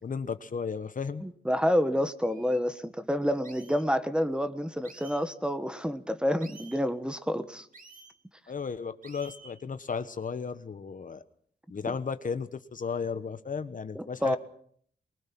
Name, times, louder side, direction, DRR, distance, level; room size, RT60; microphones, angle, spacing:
voice 1, 0.0-1.2 8.5-11.2 11.7-14.4, left 5 dB, 45° left, 11 dB, 1.2 m, -34 dB
voice 2, 1.2-7.7 13.9-14.4, equal, 5° right, 10 dB, 1.4 m, -28 dB
sound 1, 2.2-2.6 3.4-3.8 4.8-5.2 6.4-6.8 7.7-8.1 9.0-9.6, right 3 dB, 50° right, 2.8 m, -51 dB
23.0 x 20.0 x 6.1 m, 0.62 s
cardioid pair, 95°, 18 cm